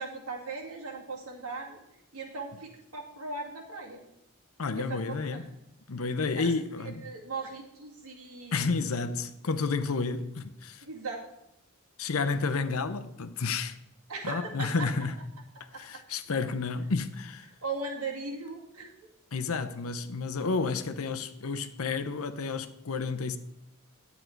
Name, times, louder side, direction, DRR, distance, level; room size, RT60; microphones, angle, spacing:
voice 1, 0.0-1.8 2.1-4.0 4.8-5.5 6.4-6.5 6.8-8.7 10.8-11.2 14.1-14.9 15.7-15.8 17.6-18.9, right 3 dB, 90° right, 2.2 m, -38 dB
voice 2, 4.6-5.4 5.9-7.0 8.5-10.8 12.0-13.8 14.2-15.2 15.8-17.5 19.3-23.4, left 4 dB, 75° left, 0.7 m, -31 dB
10.0 x 8.1 x 4.5 m
head